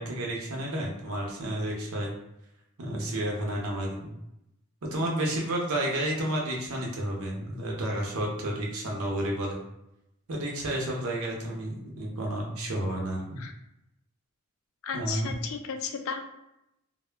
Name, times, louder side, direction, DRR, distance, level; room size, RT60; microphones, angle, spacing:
voice 1, 0.0-2.1 2.8-4.1 4.9-9.6 10.3-13.4 14.9-15.3, right 1 dB, 70° right, -1 dB, 0.7 m, -31 dB
voice 2, 14.8-16.2, left 6 dB, 65° left, 6 dB, 0.3 m, -34 dB
2.2 x 2.1 x 3.3 m, 0.87 s
head